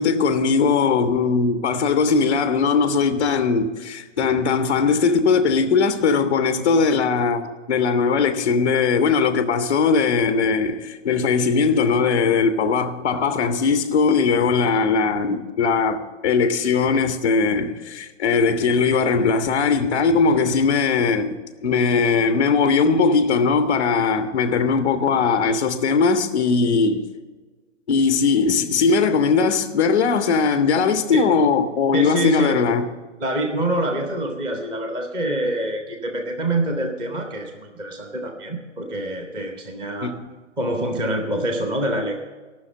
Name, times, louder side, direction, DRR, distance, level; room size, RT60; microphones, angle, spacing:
voice 1, 0.0-27.0 27.9-32.8 40.0-40.2, left 5 dB, 10° left, 0.4 m, -20 dB
voice 2, 31.9-32.6 33.2-40.1 40.6-42.2, right 1 dB, 10° right, 0.8 m, -26 dB
13.5 x 6.2 x 7.5 m
hypercardioid pair, 145°, 37 cm